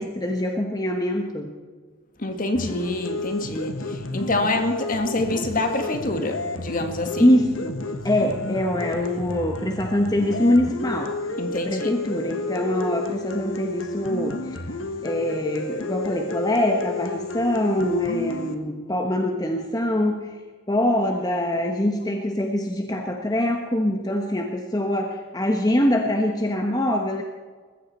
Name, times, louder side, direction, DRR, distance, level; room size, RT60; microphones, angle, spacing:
voice 1, 0.0-1.5 7.2-7.8 8.0-11.1 11.6-14.6 15.0-20.4 20.7-27.2, left 1 dB, 20° left, 3 dB, 1.1 m, -24 dB
voice 2, 2.2-7.3 11.4-11.9, left 2 dB, 45° left, 6 dB, 1.8 m, -26 dB
sound 1, 2.5-18.5, left 2 dB, 75° left, 1.4 m, -32 dB
21.0 x 15.0 x 4.3 m, 1.5 s
head